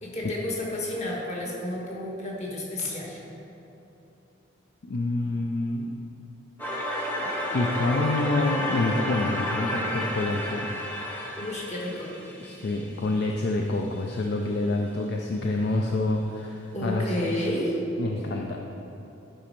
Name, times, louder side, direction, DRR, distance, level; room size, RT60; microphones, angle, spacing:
voice 1, 0.0-3.2 11.4-12.1 16.7-17.8, left 1 dB, 35° left, -4 dB, 1.3 m, -31 dB
voice 2, 4.8-5.9 7.5-10.7 12.4-17.5 18.0-18.6, left 2 dB, 50° left, 2 dB, 0.4 m, -27 dB
sound 1, 6.6-13.5, left 1 dB, 10° left, 0.9 m, -31 dB
8.7 x 4.3 x 5.2 m, 3.0 s
head